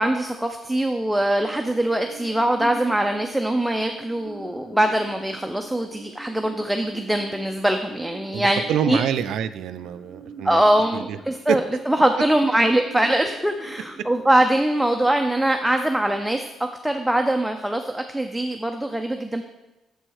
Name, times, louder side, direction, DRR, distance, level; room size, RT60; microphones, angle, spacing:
voice 1, 0.0-8.6 8.9-9.0 10.4-16.4 16.8-19.4, right 1 dB, 5° right, 4 dB, 0.5 m, -22 dB
sound 1, 1.2-17.2, right 1 dB, 70° left, 2.4 m, -44 dB
voice 2, 8.3-10.6 10.9-11.2 11.5-11.6, right 9 dB, 80° right, 12 dB, 0.4 m, -26 dB
6.9 x 4.4 x 6.4 m, 1.0 s
cardioid pair, 90°, 0 cm